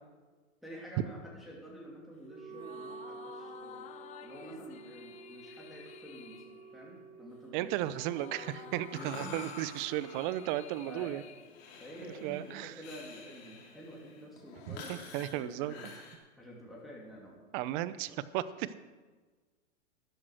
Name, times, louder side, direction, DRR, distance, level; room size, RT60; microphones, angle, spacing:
voice 1, 0.6-3.9 4.2-8.0 8.9-9.3 10.8-11.2 11.8-15.0 15.3-16.0 16.4-17.4 18.0-18.2, equal, ahead, -5 dB, 2.8 m, -49 dB
Wind instrument woodwind instrument, 2.2-9.3, right 5 dB, 15° right, 1.2 m, -50 dB
sound 1, 2.5-12.2, left 10 dB, 20° left, 0.5 m, -52 dB
voice 2, 7.5-11.2 12.2-12.7 14.7-15.7 17.5-18.8, right 14 dB, 40° right, 16 dB, 0.7 m, -35 dB
Breathing, 8.3-16.2, left 4 dB, 55° left, 3.2 m, -50 dB
13.0 x 9.8 x 6.3 m, 1.3 s
hypercardioid pair, 120°, 38 cm